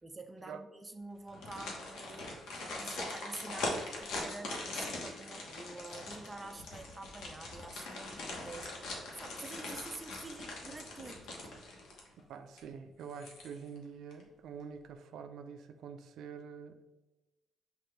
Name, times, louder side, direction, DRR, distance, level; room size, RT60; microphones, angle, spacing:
voice 1, 0.0-11.6, right 2 dB, 20° right, 6 dB, 0.5 m, -47 dB
sound 1, 1.3-12.2 12.6-12.7 13.1-13.8 14.1-14.2, left 2 dB, 75° left, 1.1 m, -42 dB
voice 2, 12.3-16.8, right 6 dB, 80° right, 8 dB, 0.3 m, -46 dB
5.7 x 2.5 x 3.3 m, 1.1 s
cardioid pair, 90°, 0 cm